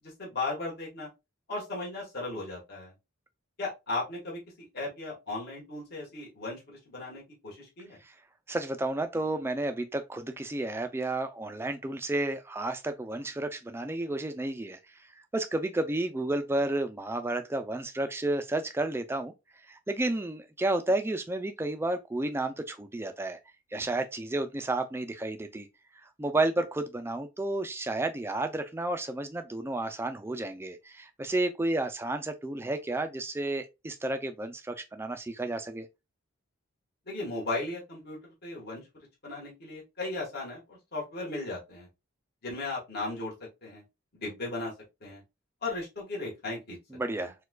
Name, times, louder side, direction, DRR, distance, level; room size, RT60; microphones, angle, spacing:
voice 1, 0.2-1.1 1.5-2.9 3.6-4.4 4.7-8.0 37.1-41.9 42.4-43.3 43.6-43.8 44.1-44.7 45.0-45.2 45.6-46.8 47.1-47.3, left 2 dB, 50° left, 1.5 m, -36 dB
voice 2, 8.5-14.8 15.3-19.3 19.7-23.4 23.7-25.7 26.2-35.9 46.9-47.3, right 2 dB, 10° right, 0.3 m, -31 dB
4.5 x 2.3 x 2.3 m
head